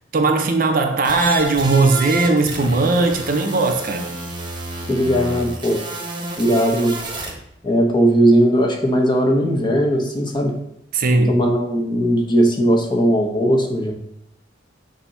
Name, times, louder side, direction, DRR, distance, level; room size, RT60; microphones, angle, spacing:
voice 1, 0.1-4.0 10.9-11.5, right 3 dB, 50° right, 0.7 m, -18 dB
sound 1, 1.0-7.3, right 2 dB, 25° right, 1.0 m, -30 dB
voice 2, 4.9-5.8 6.4-6.9 7.6-10.5 11.3-13.9, equal, 25° left, 1.0 m, -18 dB
6.9 x 2.8 x 5.6 m
head